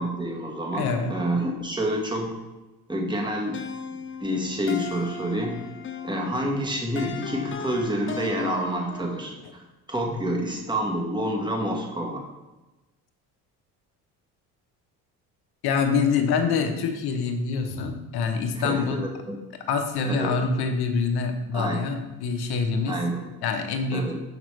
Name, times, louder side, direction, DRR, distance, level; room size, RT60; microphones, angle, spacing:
voice 1, 0.0-2.4 2.9-3.6 4.2-5.6 6.0-9.6 9.9-12.3 18.5-19.4 20.0-20.3 21.5-21.9 22.9-23.3 23.9-24.2, right 1 dB, 10° right, 0 dB, 1.4 m, -28 dB
voice 2, 0.7-1.2 15.6-19.1 19.7-23.0 23.4-24.2, left 5 dB, 60° left, 6 dB, 0.9 m, -25 dB
sound 1, 3.5-9.3, left 6 dB, 30° left, 0.5 m, -37 dB
6.0 x 5.0 x 3.2 m, 1.1 s
hypercardioid pair, 60°, 42 cm